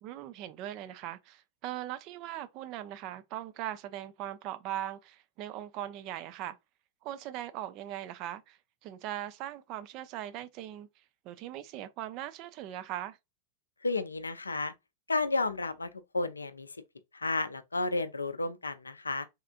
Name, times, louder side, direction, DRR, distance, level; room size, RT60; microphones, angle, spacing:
voice 1, 0.0-6.6 7.0-13.2, right 12 dB, 40° right, 0.4 m, -40 dB
voice 2, 13.8-14.7 15.1-15.9 16.1-16.7 17.1-19.2, left 3 dB, 80° left, 0.5 m, -32 dB
3.6 x 3.3 x 2.5 m
figure-of-eight pair, 90°, 0 cm